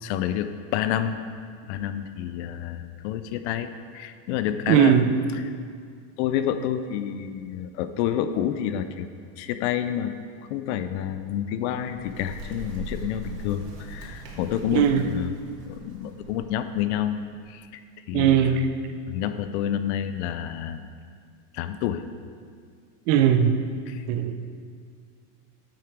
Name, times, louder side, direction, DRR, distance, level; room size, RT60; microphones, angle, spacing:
voice 1, 0.0-1.2 1.7-3.7 3.9-4.9 6.2-9.1 9.4-10.1 10.5-15.3 15.7-17.2 17.5-17.6 18.1-18.5 19.1-20.9 21.5-22.0 23.9-24.0, left 10 dB, 50° left, 10 dB, 0.5 m, -28 dB
voice 2, 4.7-5.1 14.7-15.1 18.1-18.7 23.1-23.6 24.1-24.3, right 9 dB, 50° right, 9 dB, 0.8 m, -19 dB
Bird, 11.6-17.3, right 2 dB, 85° right, 2.9 m, -41 dB
9.2 x 8.7 x 4.7 m, 2.1 s
supercardioid pair, 150°, 47 cm